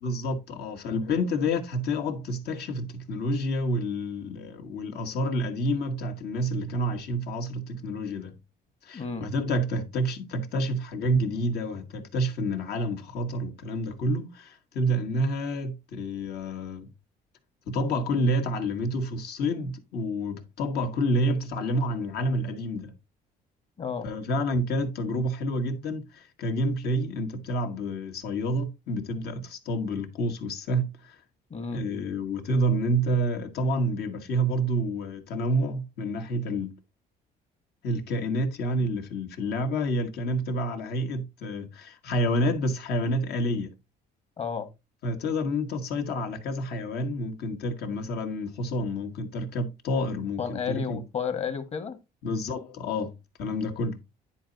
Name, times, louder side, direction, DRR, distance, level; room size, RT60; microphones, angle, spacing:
voice 1, 0.0-8.4 8.8-16.9 17.7-22.9 24.0-31.2 31.7-36.7 37.8-43.7 45.0-51.0 52.2-53.1 53.4-54.0, equal, 70° left, 1.7 m, -29 dB
voice 2, 8.9-9.3 23.8-24.1 31.5-31.8 44.4-44.7 50.4-52.0, left 6 dB, 40° left, 1.5 m, -32 dB
10.0 x 4.4 x 3.9 m
cardioid pair, 110°, 17 cm